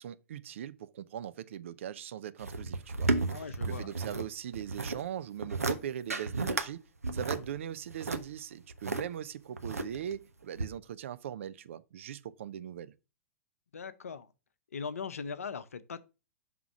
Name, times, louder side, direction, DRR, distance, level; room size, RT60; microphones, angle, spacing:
voice 1, 0.0-6.8 7.1-12.9, right 10 dB, 55° right, 0.4 m, -40 dB
sound 1, 2.4-4.2 4.5-5.0 5.4-5.8 6.1-6.7 7.0-9.0 9.6-10.1 10.6-10.7, right 3 dB, 80° right, 0.8 m, -32 dB
voice 2, 3.3-3.9 13.7-14.3 14.7-16.0, left 5 dB, 70° left, 0.6 m, -40 dB
5.9 x 3.7 x 5.7 m
figure-of-eight pair, 105°, 8 cm